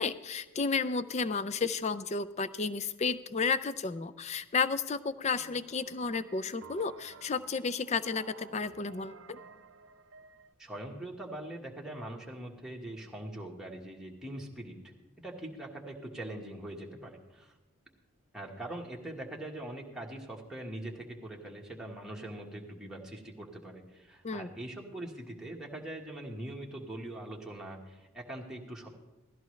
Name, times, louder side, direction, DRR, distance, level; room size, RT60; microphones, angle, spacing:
voice 1, 0.0-9.4 24.2-24.5, left 4 dB, 30° left, 14 dB, 0.4 m, -32 dB
sound 1, 5.2-10.5, right 5 dB, 60° right, 0.6 m, -53 dB
voice 2, 10.6-17.6 18.3-28.9, right 1 dB, ahead, -2 dB, 1.4 m, -42 dB
16.5 x 13.5 x 3.2 m, 1.1 s
head